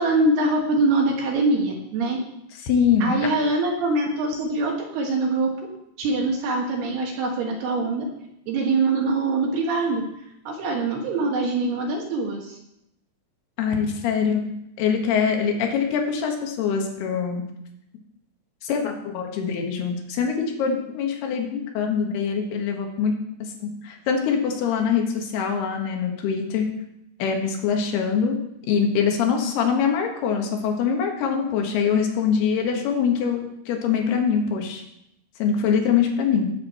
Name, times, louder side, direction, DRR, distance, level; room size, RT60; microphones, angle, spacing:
voice 1, 0.0-2.2 3.0-5.5 6.0-8.0 8.5-10.0 10.5-12.6, right 2 dB, 65° right, 1 dB, 2.8 m, -23 dB
voice 2, 2.6-3.1 13.6-14.5 14.8-17.4 18.6-23.1 23.4-26.7 27.2-28.4 28.7-34.8 35.4-36.5, left 6 dB, 65° left, 3 dB, 3.0 m, -23 dB
18.0 x 7.5 x 4.3 m, 0.82 s
omnidirectional pair, 6.0 m